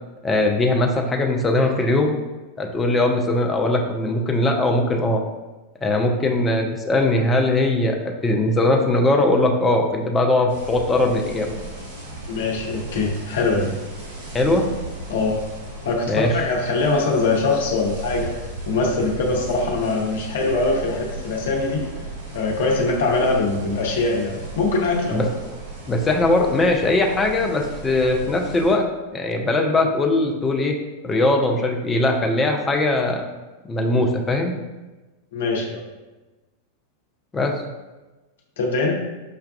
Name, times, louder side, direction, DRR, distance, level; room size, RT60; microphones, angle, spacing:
voice 1, 0.2-2.2 2.6-5.2 5.8-11.5 14.3-14.7 16.1-16.3 25.1-25.3 25.9-28.9 29.1-30.8 31.0-33.3 33.7-34.5 37.3-37.5, left 2 dB, 15° left, 2 dB, 0.5 m, -20 dB
sound 1, 10.5-28.7, right 3 dB, 65° right, 0.9 m, -36 dB
voice 2, 12.3-13.7 15.1-15.4 15.8-18.3 18.7-21.9 22.3-25.3 35.3-35.8 38.6-38.9, left 3 dB, 60° left, -1 dB, 0.7 m, -22 dB
5.6 x 2.3 x 2.3 m, 1.1 s
figure-of-eight pair, 90°, 0 cm